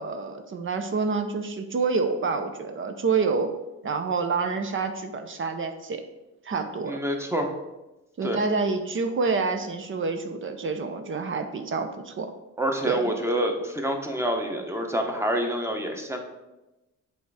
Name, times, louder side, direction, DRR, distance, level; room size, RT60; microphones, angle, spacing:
voice 1, 0.0-3.5 3.8-6.0 6.4-7.0 8.2-12.3 12.9-13.1, right 4 dB, 40° right, 7 dB, 0.7 m, -27 dB
voice 2, 6.9-7.5 8.2-8.4 12.6-16.2, right 1 dB, 10° right, 3 dB, 1.1 m, -27 dB
7.8 x 3.5 x 4.8 m, 1.0 s
cardioid pair, 90°, 30 cm